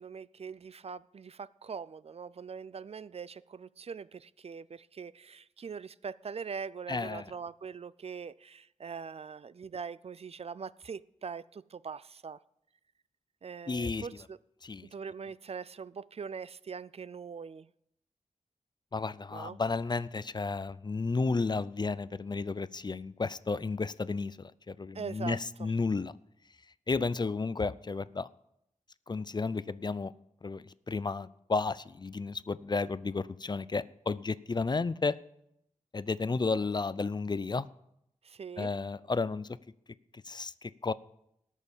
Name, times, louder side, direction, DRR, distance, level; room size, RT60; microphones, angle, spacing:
voice 1, 0.0-12.4 13.4-14.4 14.9-17.7 19.3-19.6 24.9-25.7 38.2-38.7, right 6 dB, 55° right, 0.4 m, -42 dB
voice 2, 6.9-7.3 13.7-14.1 14.6-14.9 18.9-26.1 26.9-28.3 29.1-30.1 30.4-35.2 35.9-37.7 38.6-39.5 40.3-40.9, left 4 dB, 35° left, 0.5 m, -32 dB
18.5 x 6.4 x 7.2 m
wide cardioid pair, 80°, 12 cm